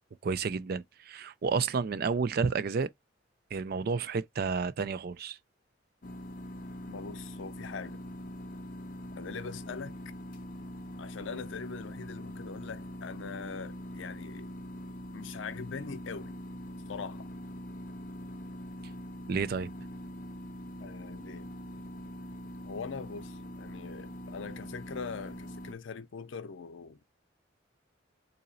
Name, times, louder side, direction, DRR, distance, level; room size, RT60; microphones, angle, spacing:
voice 1, 0.2-2.9 3.5-5.4 19.3-19.7, right 5 dB, 50° right, 0.4 m, -31 dB
sound 1, 6.0-25.7, equal, 45° left, 0.6 m, -43 dB
voice 2, 6.8-8.0 9.2-10.0 11.0-14.5 15.1-16.4 16.9-17.3 20.8-21.5 22.6-27.1, left 5 dB, 85° left, 0.5 m, -42 dB
4.0 x 2.8 x 2.6 m
head